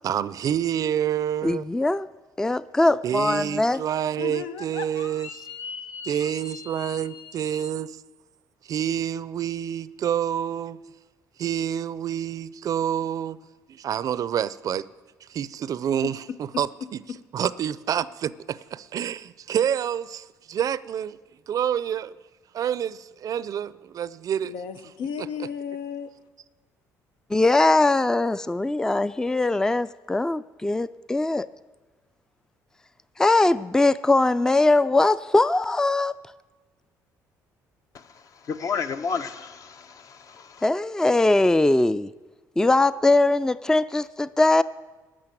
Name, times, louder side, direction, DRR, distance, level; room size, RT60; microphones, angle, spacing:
voice 1, 0.0-1.7 3.0-5.3 6.1-7.9 8.7-10.8 11.4-13.4 13.7-14.9 15.3-16.2 16.6-16.7 17.3-21.2 21.5-22.1 22.5-24.5, right 9 dB, 55° right, 0.4 m, -27 dB
voice 2, 1.4-2.1 2.4-3.8 27.3-31.5 33.2-36.1 40.6-42.1 42.6-44.6, left 2 dB, 10° left, 0.3 m, -21 dB
voice 3, 4.2-7.7 16.0-16.4 17.1-17.2 24.4-26.1, left 7 dB, 85° left, 0.8 m, -36 dB
voice 4, 38.5-40.6, left 5 dB, 50° left, 0.8 m, -31 dB
13.5 x 6.4 x 9.1 m
supercardioid pair, 80°, 7 cm